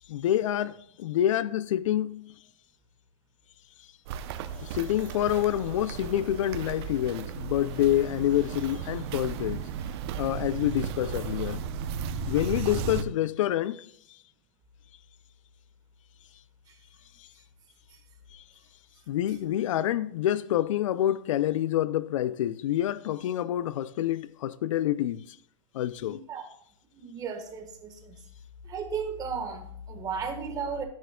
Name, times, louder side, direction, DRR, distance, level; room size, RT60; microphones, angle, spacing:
voice 1, 0.1-2.3 4.6-9.8 10.2-11.7 12.3-13.9 17.2-17.3 18.3-18.4 19.1-25.4 25.7-26.2, left 12 dB, 80° left, 0.5 m, -27 dB
Walk footsteps, 4.1-13.0, right 7 dB, 55° right, 0.7 m, -35 dB
voice 2, 26.0-26.4 26.9-28.2 28.6-30.8, right 5 dB, 25° right, 1.4 m, -35 dB
13.5 x 10.5 x 2.3 m
supercardioid pair, 145°, 16 cm